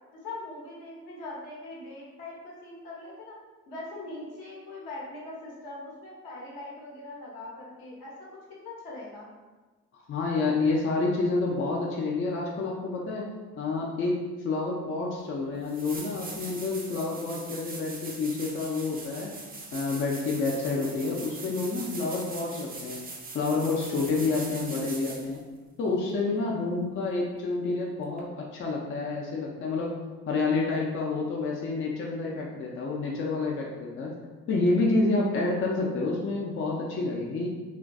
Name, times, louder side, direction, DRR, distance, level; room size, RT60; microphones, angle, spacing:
voice 1, 0.2-3.4 3.7-8.3 8.6-9.3, left 2 dB, 60° left, -5 dB, 1.0 m, -41 dB
voice 2, 9.9-13.2 13.6-19.3 19.7-23.0 23.3-25.4 25.8-29.9 30.3-34.1 34.5-37.5, left 3 dB, 35° left, -2 dB, 0.4 m, -28 dB
sound 1, 15.1-15.2 15.6-25.4 28.2-28.3, right 3 dB, 25° right, 0.5 m, -41 dB
2.5 x 2.2 x 2.3 m, 1.3 s
hypercardioid pair, 45°, 40 cm